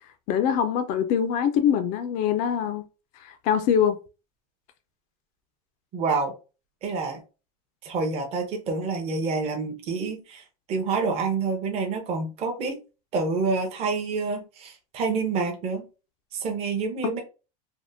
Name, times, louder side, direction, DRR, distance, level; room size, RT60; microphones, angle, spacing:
voice 1, 0.3-2.8 3.2-4.0, left 8 dB, 40° left, 0.4 m, -23 dB
voice 2, 5.9-6.3 6.8-7.2 7.8-12.8 13.1-15.8 16.3-17.2, right 4 dB, 30° right, 0.6 m, -28 dB
3.4 x 2.1 x 2.6 m
supercardioid pair, 145°, 20 cm